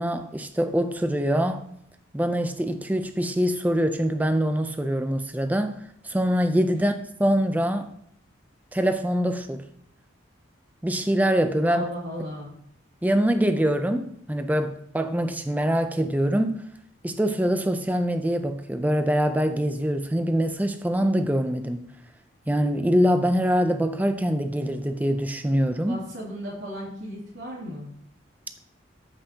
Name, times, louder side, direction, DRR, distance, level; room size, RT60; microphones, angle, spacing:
voice 1, 0.0-1.6 2.1-5.7 6.0-6.9 7.2-7.9 8.7-9.6 10.8-11.8 13.0-16.6 17.0-21.8 22.5-26.0, equal, 10° right, 0.4 m, -24 dB
voice 2, 11.6-12.5 25.9-27.9, equal, 80° right, 2.5 m, -35 dB
13.5 x 5.8 x 2.8 m
head